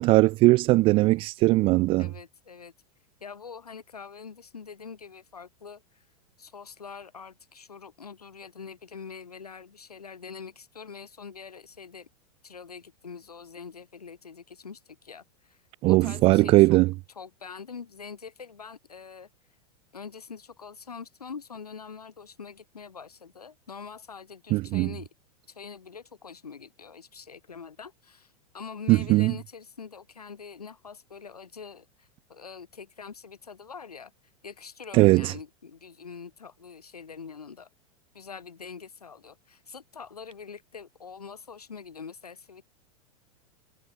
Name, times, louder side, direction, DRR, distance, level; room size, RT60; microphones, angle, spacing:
voice 1, 0.0-2.1 15.8-16.9 24.5-24.9 28.9-29.3 34.9-35.3, right 20 dB, 30° right, 0.4 m, -19 dB
voice 2, 2.0-2.7 3.2-6.0 6.4-12.1 12.4-15.6 15.8-16.8 17.1-19.3 19.9-25.1 25.5-34.1 34.4-37.7 38.1-42.6, left 6 dB, 75° left, 6.8 m, -44 dB
figure-of-eight pair, 95°, 20 cm